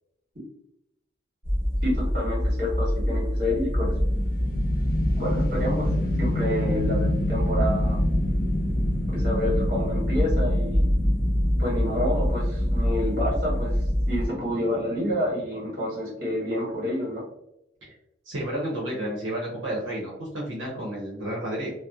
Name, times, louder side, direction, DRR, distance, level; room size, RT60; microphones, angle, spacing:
sound 1, 1.4-14.3, equal, 10° right, 0.9 m, -25 dB
voice 1, 1.8-3.9 5.2-5.9 6.2-8.0 9.1-10.8 11.6-17.2, left 1 dB, 50° right, -5 dB, 1.2 m, -28 dB
sound 2, 3.8-16.0, left 1 dB, 45° left, 0.4 m, -31 dB
voice 2, 18.2-21.7, right 1 dB, 85° right, -4 dB, 0.7 m, -31 dB
2.7 x 2.0 x 2.3 m, 0.82 s
head